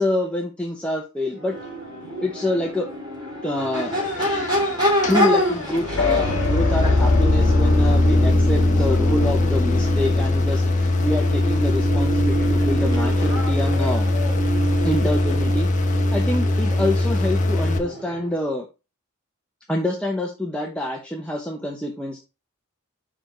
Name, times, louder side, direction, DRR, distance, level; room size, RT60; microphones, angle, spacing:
voice 1, 0.0-1.6 2.2-2.9 3.4-3.9 5.1-14.1 14.8-15.7 16.1-18.7 19.7-22.2, left 1 dB, 5° left, 0 dB, 0.8 m, -26 dB
Crowd / Race car auto racing / Accelerating revving vroom, 1.3-18.4, equal, 20° right, 2.7 m, -29 dB
sound 1, 3.7-17.8, left 2 dB, 35° left, 0.9 m, -21 dB
sound 2, 5.9-17.9, equal, 60° left, 1.4 m, -27 dB
5.3 x 5.0 x 4.3 m, 0.28 s
head